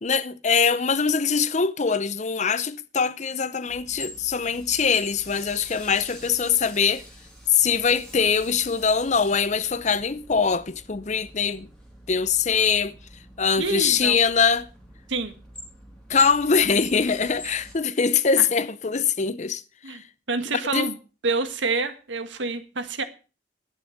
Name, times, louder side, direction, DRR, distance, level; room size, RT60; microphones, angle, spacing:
voice 1, 0.0-7.0 7.5-11.7 12.1-12.9 13.4-14.7 16.1-19.6 19.9-20.0 20.5-20.9, left 6 dB, 40° left, 0.6 m, -23 dB
sound 1, 3.7-17.7, equal, 5° left, 2.8 m, -44 dB
voice 2, 13.6-14.2 15.1-15.3 18.4-18.5 19.8-20.0 20.3-21.0 21.2-23.0, right 3 dB, 80° right, 1.7 m, -27 dB
11.5 x 9.8 x 5.9 m
head